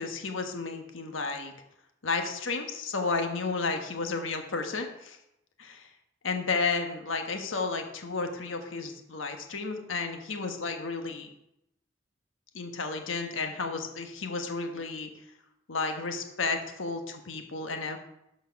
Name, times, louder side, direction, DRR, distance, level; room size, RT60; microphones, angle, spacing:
voice 1, 0.0-1.5 2.0-5.2 5.6-5.9 6.2-11.3 12.5-15.1 15.7-18.0, left 4 dB, 90° left, 5 dB, 1.3 m, -32 dB
12.5 x 4.6 x 5.8 m, 0.83 s
head